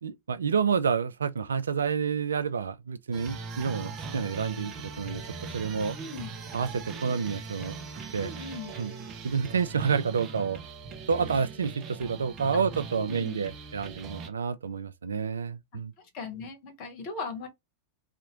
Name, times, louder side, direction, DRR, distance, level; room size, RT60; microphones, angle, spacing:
voice 1, 0.0-5.2 5.5-6.0 6.5-7.8 8.1-8.3 8.8-8.9 9.2-10.6 11.1-15.9, right 6 dB, 70° right, 0.3 m, -29 dB
sound 1, 3.1-14.3, right 4 dB, 30° right, 0.6 m, -40 dB
voice 2, 5.9-6.3 8.2-8.7 12.5-12.6 12.9-13.4 16.1-17.5, left 4 dB, 40° left, 1.3 m, -38 dB
2.7 x 2.4 x 2.9 m
figure-of-eight pair, 90°, 0 cm